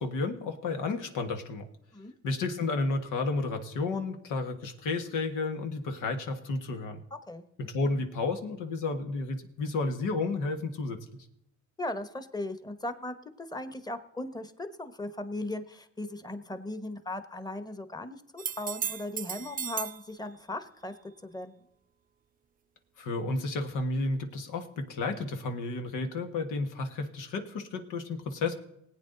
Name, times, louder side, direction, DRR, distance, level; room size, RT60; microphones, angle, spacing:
voice 1, 0.0-1.7 2.2-7.0 7.6-11.2 23.0-28.5, left 3 dB, 85° left, 6 dB, 1.6 m, -32 dB
voice 2, 7.1-7.5 11.8-20.9 21.2-21.5, left 1 dB, 15° left, 11 dB, 1.2 m, -38 dB
sound 1, 18.4-20.0 23.7-23.8, right 8 dB, 30° right, 0.4 m, -35 dB
19.5 x 8.7 x 3.9 m, 0.79 s
cardioid pair, 90°, 30 cm